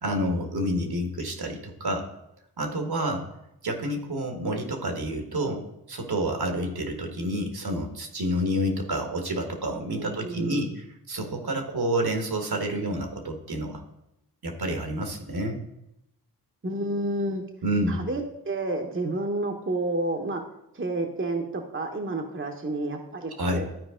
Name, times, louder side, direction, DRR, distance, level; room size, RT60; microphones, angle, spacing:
voice 1, 0.0-2.1 2.6-3.2 3.6-5.6 5.9-13.8 14.4-15.6 17.6-18.0 23.4-23.6, right 1 dB, 65° right, 4 dB, 1.7 m, -29 dB
voice 2, 9.9-10.7 16.6-17.4 17.9-20.4 20.7-23.7, right 2 dB, 30° right, 3 dB, 1.1 m, -30 dB
12.5 x 4.6 x 3.8 m, 0.85 s
cardioid pair, 40°, 41 cm